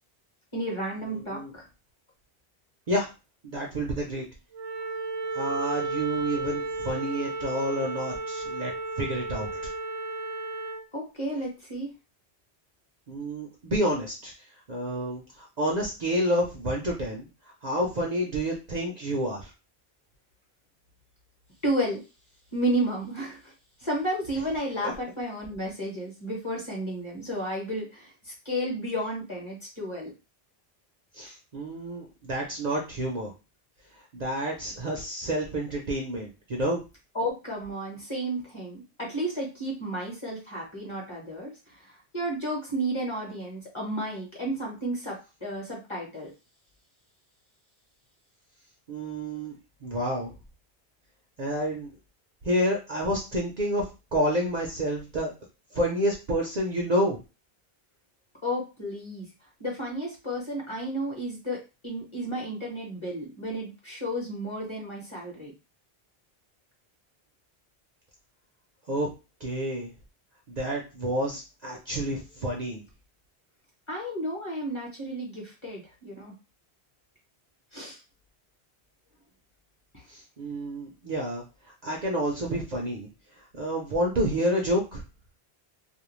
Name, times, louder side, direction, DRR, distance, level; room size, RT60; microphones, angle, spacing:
voice 1, 0.5-1.6 10.9-11.9 21.6-22.0 22.5-23.5 23.8-30.1 37.1-41.5 41.8-46.3 58.4-59.3 59.6-65.5 73.9-76.3 77.7-78.0, right 1 dB, 30° left, -2 dB, 1.0 m, -32 dB
voice 2, 1.1-1.5 2.9-3.1 3.4-4.2 5.3-8.7 9.0-9.7 13.1-14.3 14.7-17.3 17.6-19.5 24.8-24.9 31.1-33.3 34.1-36.8 48.9-49.5 49.8-50.3 51.4-51.9 52.4-55.3 55.7-57.2 68.9-69.1 69.4-69.9 70.5-72.8 80.1-81.4 81.8-83.1 83.5-85.0, equal, 50° right, -1 dB, 0.6 m, -29 dB
Wind instrument woodwind instrument, 4.5-10.8, right 2 dB, 80° right, 0.9 m, -33 dB
2.5 x 2.1 x 3.0 m, 0.29 s
omnidirectional pair, 1.1 m